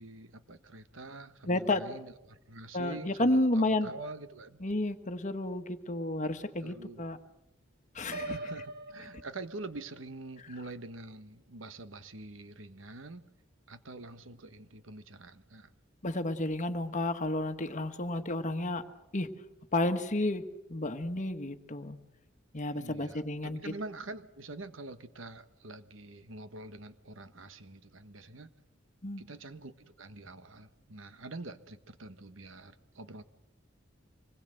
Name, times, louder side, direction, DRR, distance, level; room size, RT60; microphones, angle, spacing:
voice 1, 0.0-4.6 6.6-7.1 8.2-13.2 13.7-15.7 22.7-28.5 29.2-33.2, right 2 dB, 85° right, 11 dB, 1.3 m, -45 dB
voice 2, 1.5-1.8 2.7-3.9 4.6-7.2 7.9-8.4 16.0-18.8 19.1-19.3 19.7-20.4 20.7-22.0 22.5-23.6 29.0-29.2, left 1 dB, 40° left, 9 dB, 1.4 m, -31 dB
Piano, 8.1-10.0, right 2 dB, 55° right, 1.9 m, -42 dB
25.5 x 20.0 x 7.9 m, 0.94 s
head